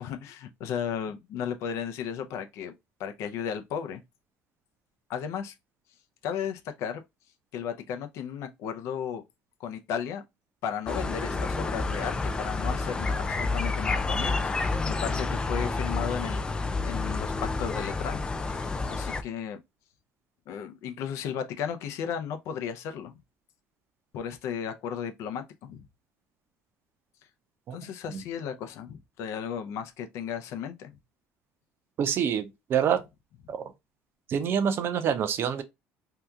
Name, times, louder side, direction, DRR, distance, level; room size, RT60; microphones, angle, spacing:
voice 1, 0.0-2.7 3.0-4.0 5.1-5.5 6.2-7.0 7.5-9.2 9.6-10.2 10.6-16.4 16.8-19.6 20.5-23.1 24.1-25.9 27.7-31.0, left 8 dB, 70° left, 0.6 m, -35 dB
sound 1, 10.9-19.2, left 3 dB, 15° left, 0.3 m, -29 dB
voice 2, 32.0-33.0 33.5-33.6 34.3-35.6, right 8 dB, 50° right, 0.6 m, -26 dB
2.8 x 2.3 x 3.4 m
cardioid pair, 110°, 5 cm